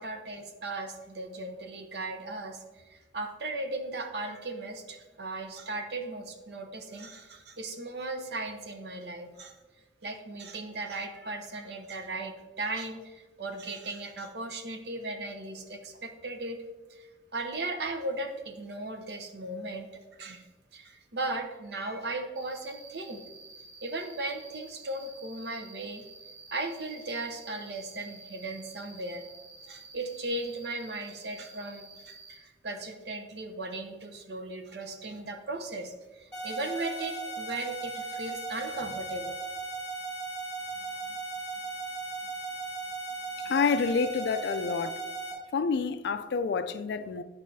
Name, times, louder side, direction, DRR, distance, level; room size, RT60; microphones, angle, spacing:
voice 1, 0.0-2.6 2.9-9.5 10.0-16.6 16.9-19.9 20.2-20.5 20.7-23.2 23.8-26.0 26.5-29.2 29.6-39.4, right 2 dB, 60° right, 0.7 m, -37 dB
Cricket, 22.3-32.3, right 3 dB, 40° right, 1.1 m, -51 dB
sound 1, 36.3-45.3, right 3 dB, 5° left, 1.6 m, -37 dB
voice 2, 43.5-44.9 45.5-47.2, left 5 dB, 60° left, 0.3 m, -28 dB
8.2 x 5.4 x 2.7 m
head